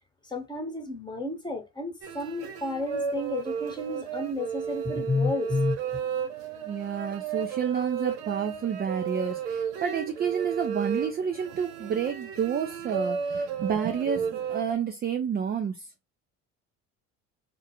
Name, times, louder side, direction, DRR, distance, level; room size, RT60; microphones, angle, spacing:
voice 1, 0.2-5.8, left 3 dB, 10° left, 1.0 m, -31 dB
sound 1, 2.0-14.7, right 7 dB, 75° right, 0.7 m, -33 dB
voice 2, 6.7-15.8, right 7 dB, 25° right, 0.4 m, -30 dB
2.3 x 2.2 x 2.8 m
hypercardioid pair, 65°, 40 cm